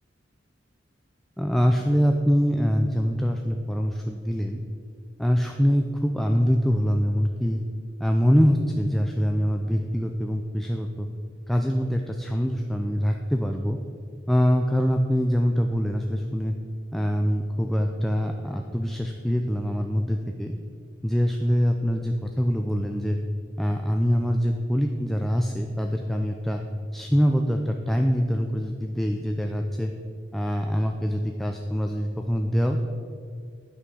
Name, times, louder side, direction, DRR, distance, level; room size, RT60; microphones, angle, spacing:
voice 1, 1.4-4.6 5.2-7.6 8.0-11.1 11.5-13.8 14.3-16.5 16.9-20.5 21.0-23.2 23.6-26.6 26.9-29.9 30.3-32.8, equal, ahead, 3 dB, 0.4 m, -24 dB
9.7 x 6.0 x 6.3 m, 2.2 s
head